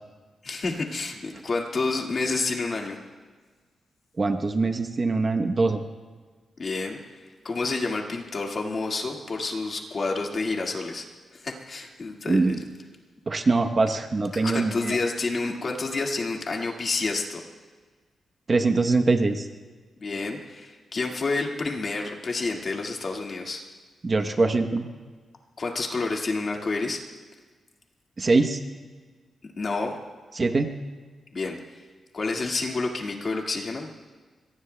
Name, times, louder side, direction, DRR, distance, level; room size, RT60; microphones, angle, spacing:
voice 1, 0.4-3.0 6.6-11.0 11.3-12.6 14.3-17.4 20.0-23.6 25.6-27.0 29.6-30.0 31.3-31.6 32.1-33.9, left 3 dB, 40° left, 0 dB, 1.9 m, -29 dB
voice 2, 4.2-5.8 12.3-12.6 13.3-15.0 18.5-19.5 24.0-24.9 28.2-28.6 30.4-30.7, right 3 dB, 30° right, 5 dB, 0.9 m, -23 dB
26.0 x 23.0 x 2.2 m, 1.4 s
wide cardioid pair, 145°, 0 cm